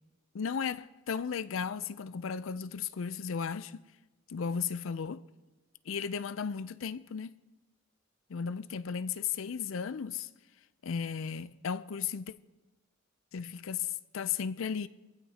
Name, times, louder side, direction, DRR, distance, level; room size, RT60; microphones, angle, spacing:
voice 1, 0.3-3.8 4.3-5.3 5.9-7.4 8.3-10.3 10.8-12.3 13.3-14.9, left 6 dB, 75° left, 0.5 m, -35 dB
24.5 x 15.5 x 2.8 m
head